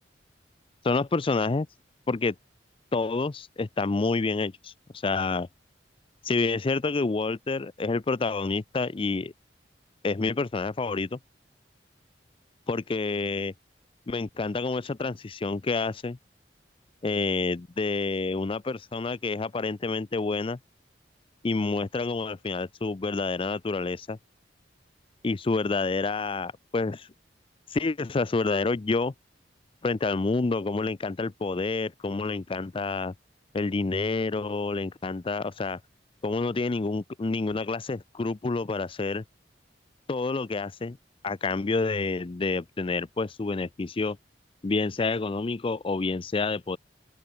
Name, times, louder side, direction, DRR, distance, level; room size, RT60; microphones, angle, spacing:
voice 1, 0.8-1.7 2.1-2.3 2.9-4.7 5.0-5.5 6.2-9.3 10.0-11.2 12.7-13.5 14.1-16.2 17.0-20.6 21.4-24.2 25.2-27.1 27.7-29.1 29.8-33.1 33.5-35.8 36.2-39.2 40.1-41.0 41.2-44.2 44.6-46.8, left 3 dB, 30° left, 0.5 m, -28 dB
open air
head